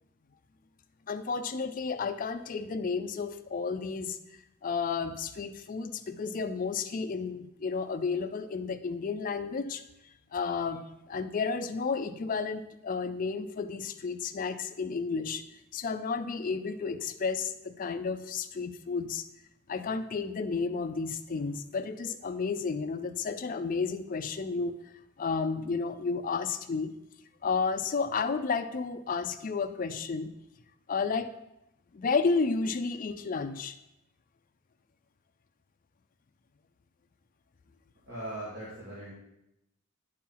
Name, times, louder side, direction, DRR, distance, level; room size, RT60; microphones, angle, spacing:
voice 1, 1.1-4.2 4.6-15.4 15.7-19.3 19.7-24.7 25.2-26.9 27.4-30.3 30.9-31.3 31.9-33.7, left 4 dB, 40° left, 9 dB, 0.4 m, -32 dB
voice 2, 38.1-39.1, right 1 dB, 50° right, -9 dB, 2.3 m, -39 dB
10.0 x 4.4 x 3.8 m, 0.87 s
head